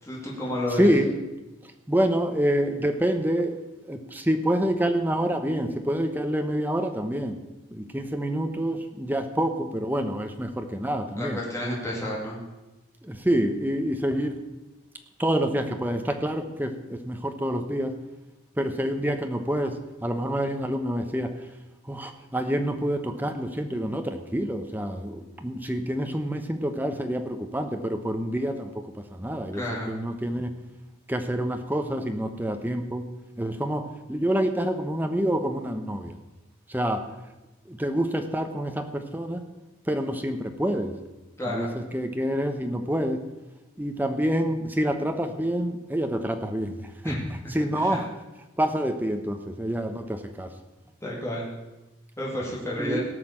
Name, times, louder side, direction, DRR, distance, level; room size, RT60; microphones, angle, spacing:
voice 1, 0.0-1.0 11.1-12.4 29.5-29.9 41.4-41.7 47.0-47.3 47.7-48.0 51.0-51.5 52.2-53.0, left 1 dB, 15° left, -5 dB, 2.5 m, -31 dB
voice 2, 0.8-1.1 1.9-3.6 3.9-7.3 7.7-11.4 13.1-14.4 15.2-17.9 18.6-21.3 21.9-28.7 29.2-29.6 29.9-30.5 31.1-33.0 33.4-36.1 36.7-37.0 37.7-39.4 39.9-40.9 41.5-41.7 41.9-43.2 43.8-46.7 47.0-47.2 47.5-48.1 48.6-50.5 52.8-53.0, right 1 dB, 10° right, 6 dB, 1.0 m, -27 dB
17.5 x 5.9 x 7.5 m, 1.0 s
head